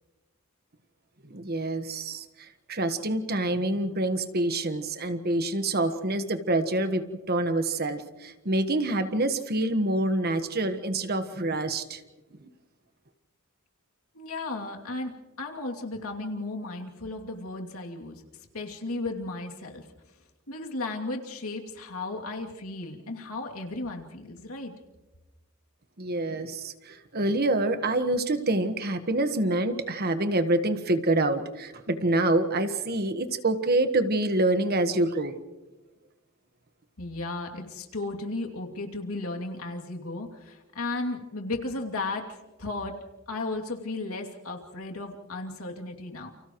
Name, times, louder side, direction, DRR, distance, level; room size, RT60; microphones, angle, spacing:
voice 1, 1.2-12.0 12.4-12.5 26.0-35.3, right 2 dB, 45° right, 9 dB, 1.4 m, -26 dB
voice 2, 14.1-18.2 18.5-19.9 20.5-24.7 37.0-43.0 43.3-46.3, left 2 dB, 90° left, 1 dB, 2.8 m, -35 dB
30.0 x 29.5 x 3.1 m, 1.2 s
head